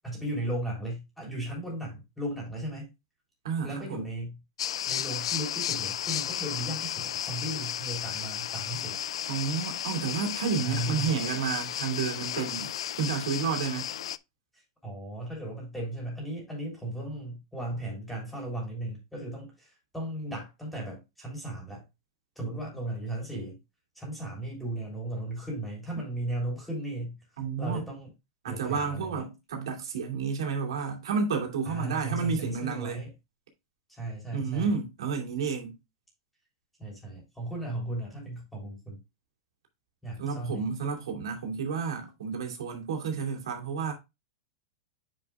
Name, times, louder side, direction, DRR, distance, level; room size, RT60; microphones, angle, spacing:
voice 1, 0.0-2.9 3.6-4.4 4.8-9.0 10.6-11.1 14.5-21.8 22.3-23.6 23.9-28.1 28.5-29.2 31.6-33.1 33.9-34.7 36.8-39.0 40.0-40.7, right 1 dB, ahead, 3.3 m, -36 dB
voice 2, 3.4-4.1 9.2-12.7 13.0-13.9 27.4-27.8 28.4-33.0 34.3-35.7 40.2-43.9, right 5 dB, 85° right, 2.4 m, -31 dB
sound 1, 4.6-14.2, left 11 dB, 85° left, 0.3 m, -34 dB
9.4 x 4.9 x 2.3 m
supercardioid pair, 160°, 3 cm